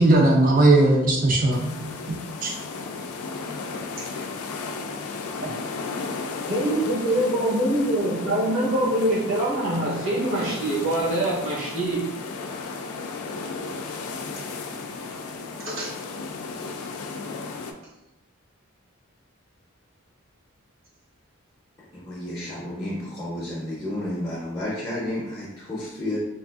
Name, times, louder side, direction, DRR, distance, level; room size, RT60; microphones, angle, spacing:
voice 1, 0.0-2.2 2.4-2.5, right 2 dB, 40° right, 0 dB, 0.4 m, -18 dB
sound 1, 1.5-17.7, left 4 dB, 85° left, 0.3 m, -34 dB
voice 2, 6.5-12.1 15.7-15.9, right 1 dB, 65° right, -5 dB, 0.9 m, -24 dB
voice 3, 21.9-26.2, left 1 dB, 15° left, -9 dB, 0.5 m, -31 dB
3.2 x 2.4 x 2.4 m, 0.94 s
head